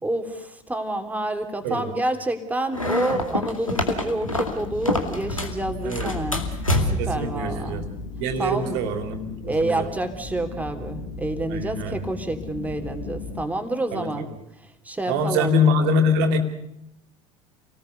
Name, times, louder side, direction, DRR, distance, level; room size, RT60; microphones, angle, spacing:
voice 1, 0.0-6.4 6.8-7.9 8.4-8.8 9.4-14.3 14.6-15.6, right 2 dB, 10° right, 6 dB, 3.1 m, -28 dB
sound 1, 2.7-5.6 5.9-7.2, left 1 dB, 90° left, 2.3 m, -26 dB
sound 2, 4.6-13.4, left 3 dB, 60° left, 4.8 m, -36 dB
voice 2, 7.0-7.8 8.2-9.8 11.5-12.0 13.9-14.3 15.1-16.4, left 2 dB, 55° right, 7 dB, 3.2 m, -24 dB
28.5 x 19.0 x 6.8 m, 0.83 s
figure-of-eight pair, 65°, 17 cm